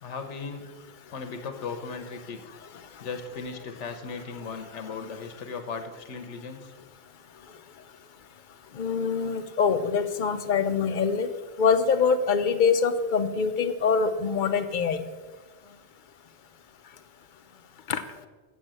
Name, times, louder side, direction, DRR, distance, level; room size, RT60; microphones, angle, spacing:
voice 1, 0.0-0.7 1.1-2.4 3.0-6.7 15.6-15.8 17.5-17.6, left 5 dB, 80° left, 7 dB, 1.2 m, -37 dB
voice 2, 8.8-11.3 11.6-15.0 17.9-18.0, left 5 dB, 55° left, 10 dB, 0.6 m, -24 dB
7.9 x 6.2 x 7.5 m, 1.3 s
omnidirectional pair, 1.2 m